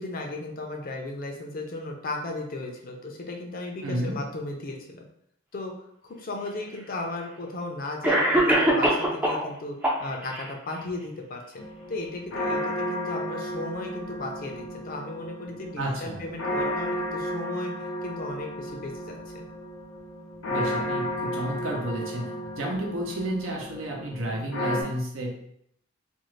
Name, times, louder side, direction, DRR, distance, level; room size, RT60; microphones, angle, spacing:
voice 1, 0.0-5.0 5.5-5.7 6.0-19.4, left 2 dB, 45° left, 2 dB, 0.5 m, -36 dB
voice 2, 3.8-4.1 15.8-16.2 20.5-22.3 22.6-25.4, right 1 dB, 85° right, -1 dB, 0.8 m, -31 dB
Cough, 6.3-6.4 7.4-7.5 8.0-9.5 9.8-10.5, right 1 dB, 10° right, 0.4 m, -22 dB
sound 1, 11.6-24.8, equal, 85° left, 0.7 m, -33 dB
2.6 x 2.4 x 3.1 m, 0.72 s
head